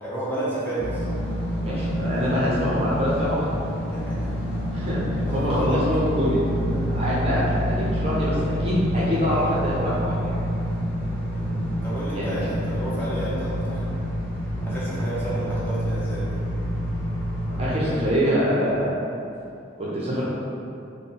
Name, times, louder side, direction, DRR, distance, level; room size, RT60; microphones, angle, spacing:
voice 1, 0.0-1.1 3.9-4.3 5.3-5.8 11.3-11.5 11.8-13.9 14.6-16.4, right 1 dB, 10° left, -9 dB, 0.7 m, -31 dB
sound 1, 0.8-17.8, equal, 50° left, 0.6 m, -27 dB
voice 2, 1.6-3.5 4.7-10.4 12.1-12.4 17.6-19.0 19.8-20.2, equal, 30° right, -7 dB, 0.6 m, -25 dB
3.7 x 2.1 x 3.8 m, 2.6 s
head